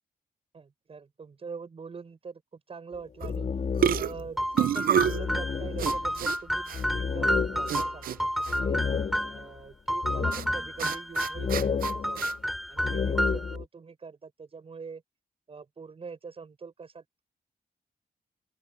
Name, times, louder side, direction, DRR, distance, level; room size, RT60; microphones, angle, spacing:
voice 1, 0.5-3.5 4.0-8.8 9.3-12.3 12.7-15.0 15.5-17.0, right 5 dB, 40° right, 6.1 m, -43 dB
sound 1, 2.9-4.3 4.7-4.8 5.0-9.5 10.0-10.8 11.3-13.6, left 6 dB, 50° left, 1.9 m, -31 dB
sound 2, 3.2-3.4 3.8-5.2 5.8-6.4 6.7-6.8 7.7-8.2 8.4-8.6 10.3-10.4 10.8-12.3, right 9 dB, 85° right, 0.5 m, -28 dB
sound 3, 4.4-9.4 9.9-11.5 11.8-13.6, equal, ahead, 3.5 m, -30 dB
open air
wide cardioid pair, 145°, 15 cm